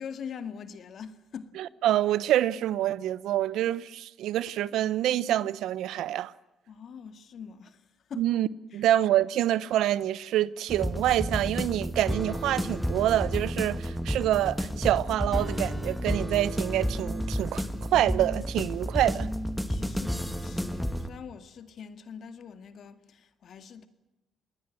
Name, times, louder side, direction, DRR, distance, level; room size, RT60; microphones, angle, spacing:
voice 1, 0.0-1.5 6.7-7.8 8.1-8.3 8.7-8.8 19.7-23.9, left 7 dB, 60° left, 2.1 m, -43 dB
voice 2, 1.6-6.3 8.2-8.5 8.7-19.3, right 13 dB, 85° right, 0.9 m, -26 dB
sound 1, 10.7-21.1, equal, 5° left, 2.0 m, -31 dB
27.5 x 19.5 x 7.8 m
cardioid pair, 90°, 0 cm